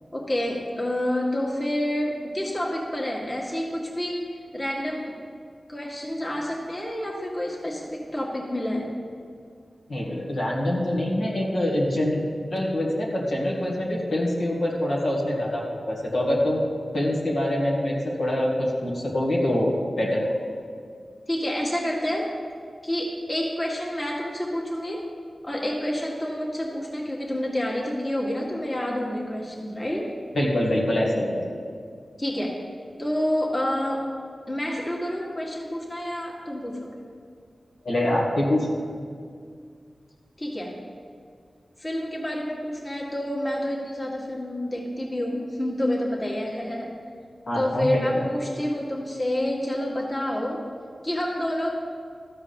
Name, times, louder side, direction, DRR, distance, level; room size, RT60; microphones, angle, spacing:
voice 1, 0.1-5.2 5.7-9.0 21.3-22.3 22.8-25.0 25.4-30.1 32.2-32.6 33.0-34.1 34.5-37.0 40.4-40.8 41.8-46.9 47.5-50.6 51.0-51.7, left 1 dB, 35° left, -3 dB, 2.0 m, -28 dB
voice 2, 9.9-12.2 12.5-16.6 16.9-19.7 20.0-20.4 30.3-31.4 37.8-38.8 47.5-48.2, left 1 dB, 80° left, -4 dB, 2.0 m, -25 dB
13.5 x 4.9 x 7.0 m, 2.2 s
wide cardioid pair, 65°, 0 cm